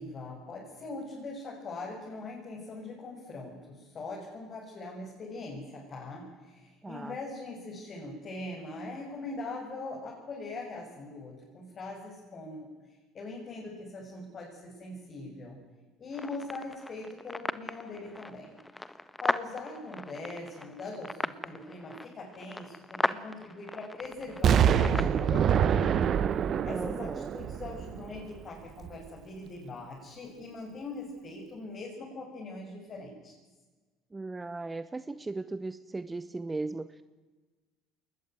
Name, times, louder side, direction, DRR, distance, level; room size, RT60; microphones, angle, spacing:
voice 1, 0.0-12.7 13.1-15.6 16.0-18.5 19.2-26.1 26.3-33.3, left 3 dB, 40° left, -2 dB, 7.0 m, -41 dB
voice 2, 6.8-7.2 26.7-27.3 34.1-37.0, right 3 dB, 20° right, 13 dB, 1.0 m, -37 dB
sound 1, 16.1-25.2, left 2 dB, 10° left, 1.3 m, -37 dB
Explosion, 24.4-28.4 28.8-28.9, right 8 dB, 50° right, 1.3 m, -26 dB
22.0 x 20.5 x 9.5 m, 1.3 s
hypercardioid pair, 70°, 0 cm